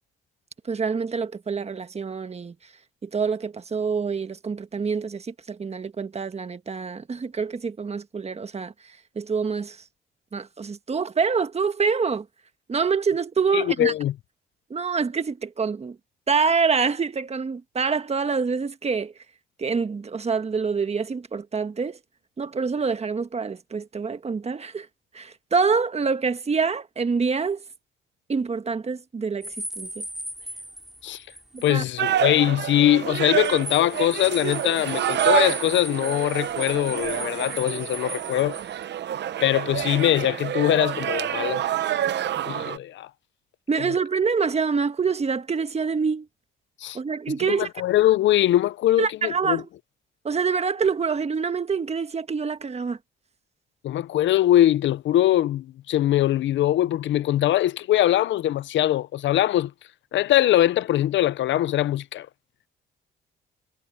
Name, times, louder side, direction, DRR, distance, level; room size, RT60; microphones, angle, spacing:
voice 1, 0.6-2.5 3.0-8.7 9.1-9.8 10.3-12.3 12.7-13.9 14.7-16.0 16.3-19.1 19.6-22.0 22.4-24.9 25.1-27.6 28.3-30.0 31.5-31.8 43.7-46.3 46.9-47.7 49.0-49.7 50.2-53.0, right 5 dB, 30° right, 1.4 m, -26 dB
voice 2, 13.5-14.1 31.0-31.2 31.6-38.6 39.4-41.6 42.5-43.1 46.8-47.0 47.4-49.6 53.8-59.7 60.1-62.3, left 13 dB, 70° left, 0.6 m, -22 dB
sound 1, 29.4-31.8 32.1-32.2 33.1-38.8, equal, ahead, 6.3 m, -38 dB
sound 2, 32.0-42.8, right 11 dB, 60° right, 0.8 m, -27 dB
cardioid pair, 90°, 20 cm